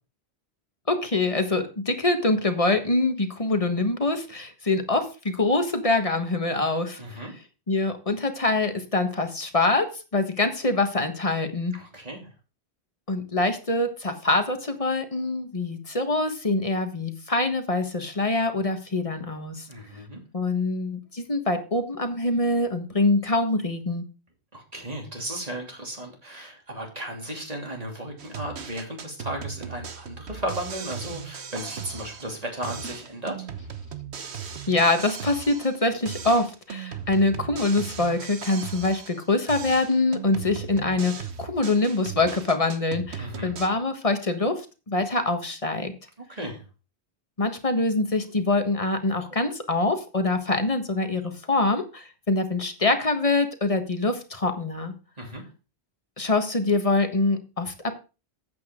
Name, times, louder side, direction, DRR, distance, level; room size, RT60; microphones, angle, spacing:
voice 1, 0.9-7.0 7.7-11.7 13.1-19.7 20.3-24.0 34.7-44.6 44.9-45.9 47.4-54.9 56.2-57.9, left 2 dB, 30° left, 7 dB, 1.5 m, -24 dB
voice 2, 7.0-7.3 11.7-12.3 19.7-20.2 24.5-33.5 43.2-43.5 46.3-46.6 55.2-55.4, right 1 dB, 35° right, 1 dB, 3.2 m, -35 dB
sound 1, 28.2-32.4 32.6-35.8 36.0-39.2 39.5-43.7, right 7 dB, 80° right, 1.3 m, -37 dB
12.5 x 8.6 x 3.8 m, 0.32 s
omnidirectional pair, 1.1 m